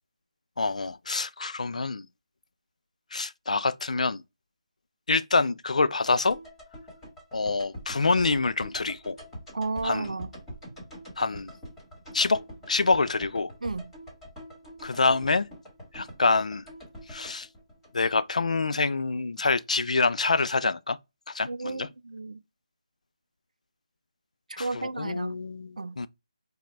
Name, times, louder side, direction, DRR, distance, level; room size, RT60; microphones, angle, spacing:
voice 1, 0.6-2.1 3.1-4.2 5.1-6.4 7.3-9.2 9.8-10.1 11.2-11.5 12.1-12.4 12.7-13.5 14.8-15.5 15.9-16.7 17.1-17.5 17.9-21.0 21.3-21.9 24.6-26.1, left 3 dB, 75° left, 0.4 m, -26 dB
sound 1, 6.3-18.5 18.7-18.8, equal, 5° left, 1.4 m, -45 dB
voice 2, 9.5-10.3 13.6-13.9 21.5-22.4 24.5-25.4 25.8-26.0, right 3 dB, 90° right, 0.4 m, -33 dB
4.8 x 2.1 x 3.2 m
figure-of-eight pair, 165°, 4 cm